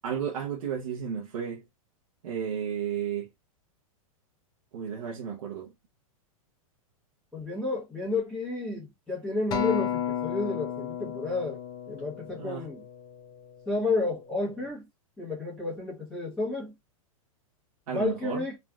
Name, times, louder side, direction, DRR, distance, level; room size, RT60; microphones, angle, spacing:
voice 1, 0.0-1.6 2.2-3.3 4.7-5.7 12.4-12.6 17.9-18.4, right 8 dB, 80° right, 0.8 m, -33 dB
voice 2, 7.3-11.6 11.9-12.8 13.7-14.9 15.2-16.7 17.9-18.6, left 3 dB, 5° left, 1.1 m, -31 dB
Acoustic guitar, 9.5-13.9 14.6-14.7, left 9 dB, 20° left, 0.5 m, -33 dB
3.2 x 2.4 x 2.3 m
hypercardioid pair, 145°, 18 cm